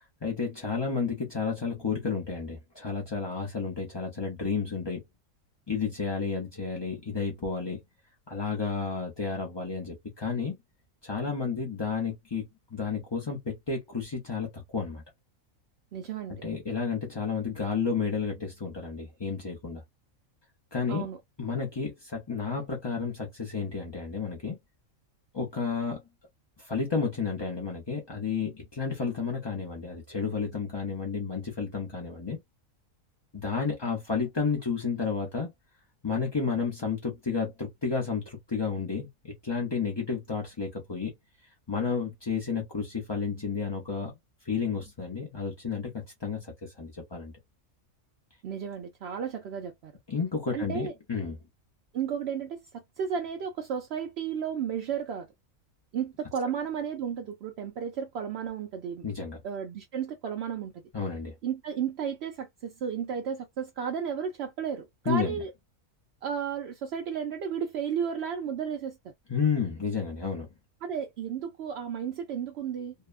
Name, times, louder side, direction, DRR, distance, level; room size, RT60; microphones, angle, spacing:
voice 1, 0.2-5.0 5.7-7.8 8.3-10.6 11.0-12.4 12.7-15.0 16.4-19.8 20.7-21.1 21.4-24.6 25.3-26.0 26.6-32.4 33.3-35.5 36.0-41.1 41.7-44.1 44.4-47.3 50.1-51.4 59.0-59.4 60.9-61.3 65.1-65.4 69.3-70.5, left 5 dB, 35° left, 0.4 m, -31 dB
voice 2, 15.9-16.4 20.9-21.2 48.4-49.9 50.5-50.9 51.9-55.3 55.9-59.1 59.4-60.7 61.4-65.5 66.2-69.1 70.8-72.9, right 7 dB, 65° right, 0.7 m, -33 dB
2.7 x 2.2 x 2.3 m
omnidirectional pair, 1.5 m